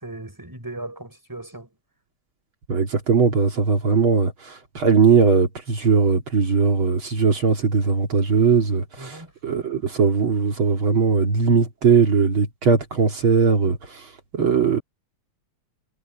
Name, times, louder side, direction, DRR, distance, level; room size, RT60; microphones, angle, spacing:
voice 1, 0.0-1.7 9.0-9.3, right 2 dB, 10° right, 5.7 m, -37 dB
voice 2, 2.7-14.1 14.3-14.8, right 5 dB, 65° right, 3.3 m, -19 dB
omnidirectional pair, 2.4 m